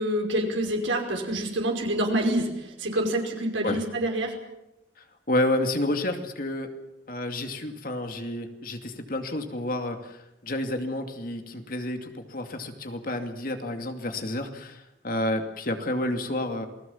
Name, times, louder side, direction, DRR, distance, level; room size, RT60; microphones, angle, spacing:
voice 1, 0.0-4.4, right 1 dB, 85° right, 2 dB, 5.3 m, -27 dB
voice 2, 5.0-6.7 7.1-16.7, left 1 dB, 45° left, 5 dB, 2.6 m, -30 dB
28.5 x 19.5 x 7.3 m, 0.90 s
head